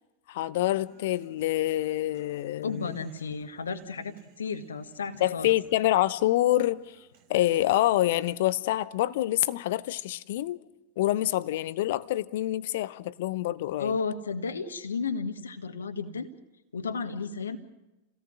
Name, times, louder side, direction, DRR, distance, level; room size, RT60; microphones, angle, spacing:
voice 1, 0.3-3.0 5.2-6.9 7.3-10.6 11.0-14.0, left 15 dB, 55° left, 0.9 m, -26 dB
Human voice, 0.6-8.7, right 5 dB, 50° right, 4.9 m, -60 dB
voice 2, 2.6-5.5 13.8-16.3 16.7-17.6, left 5 dB, 70° left, 1.6 m, -33 dB
29.5 x 17.5 x 6.4 m
figure-of-eight pair, 90°, 0 cm